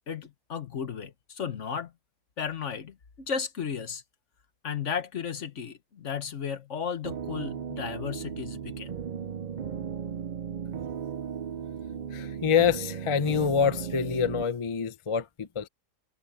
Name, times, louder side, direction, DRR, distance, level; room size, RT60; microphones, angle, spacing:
voice 1, 0.1-1.9 2.4-4.0 4.6-8.9, left 7 dB, 55° left, 1.5 m, -34 dB
sound 1, 7.0-14.4, right 7 dB, 60° right, 0.4 m, -36 dB
voice 2, 12.1-15.7, left 7 dB, 35° left, 0.5 m, -26 dB
omnidirectional pair, 1.6 m